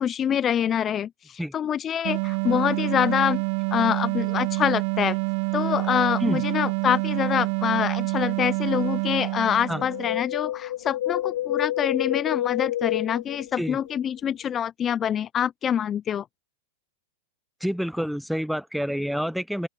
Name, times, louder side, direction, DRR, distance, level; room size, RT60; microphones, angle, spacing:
voice 1, 0.0-3.4 3.7-5.2 5.5-16.3, left 9 dB, 30° left, 0.6 m, -25 dB
sound 1, 2.0-10.2, right 39 dB, 60° right, 1.4 m, -27 dB
Wind, 9.7-14.0 14.3-14.4, left 13 dB, 75° left, 3.1 m, -29 dB
voice 2, 17.6-19.7, equal, ahead, 0.8 m, -28 dB
open air
hypercardioid pair, 105°, 0 cm